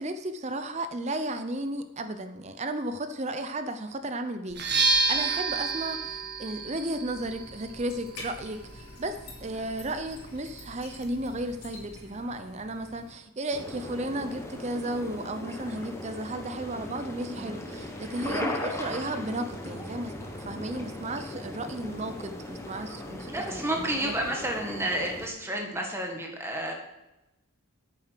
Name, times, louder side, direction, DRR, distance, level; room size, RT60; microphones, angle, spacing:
voice 1, 0.0-24.1, right 1 dB, 30° right, 9 dB, 0.6 m, -34 dB
sound 1, 4.5-12.2, right 3 dB, 45° right, 1.4 m, -32 dB
sound 2, 7.1-13.1, left 2 dB, 90° left, 3.9 m, -47 dB
sound 3, 13.5-25.3, left 1 dB, 10° left, 1.1 m, -38 dB
voice 2, 23.3-26.7, right 1 dB, 10° right, 1 dB, 1.6 m, -31 dB
9.0 x 7.1 x 6.7 m, 0.94 s
head